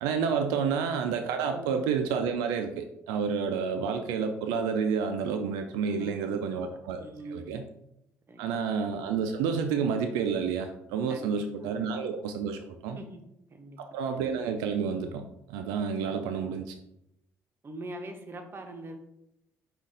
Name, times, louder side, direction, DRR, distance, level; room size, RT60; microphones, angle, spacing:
voice 1, 0.0-7.6 8.4-13.0 13.8-16.8, right 6 dB, 85° right, 6 dB, 0.3 m, -30 dB
voice 2, 5.9-7.6 8.3-8.6 11.1-11.8 12.9-13.2 13.5-13.8 16.0-16.6 17.6-19.0, right 1 dB, 35° right, 4 dB, 0.9 m, -43 dB
5.2 x 2.4 x 3.8 m, 0.82 s
supercardioid pair, 70°, 6 cm